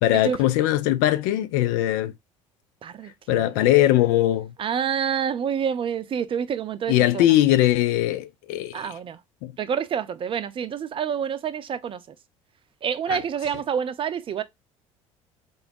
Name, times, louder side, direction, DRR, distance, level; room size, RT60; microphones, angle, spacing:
voice 1, 0.0-2.1 3.3-4.5 6.9-8.9 9.4-9.5 13.1-13.2, left 14 dB, 55° left, 0.6 m, -20 dB
voice 2, 2.8-3.6 4.6-7.3 8.7-9.2 9.6-12.0 12.8-14.4, right 8 dB, 30° right, 0.6 m, -28 dB
3.8 x 3.4 x 3.8 m
figure-of-eight pair, 60°, 17 cm